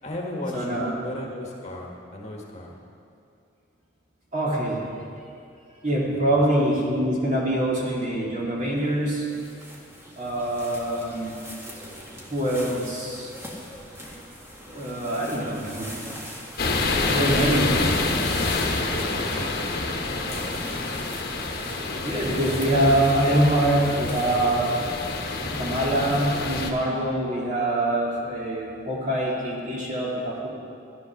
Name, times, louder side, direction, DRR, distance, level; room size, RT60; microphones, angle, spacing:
voice 1, 0.0-2.8 6.1-6.4 18.8-19.6 20.0-20.5, left 1 dB, 35° left, -1 dB, 1.5 m, -36 dB
voice 2, 0.5-0.9 4.3-4.8 5.8-9.2 10.2-11.4 12.3-13.3 14.7-15.9 17.0-17.7 22.0-24.7 25.4-30.5, right 1 dB, 40° right, -5 dB, 3.0 m, -24 dB
sound 1, 8.8-26.6, equal, 15° right, 1.6 m, -42 dB
sound 2, 16.6-26.7, left 3 dB, 50° left, 1.2 m, -27 dB
13.0 x 11.5 x 6.3 m, 2.5 s
head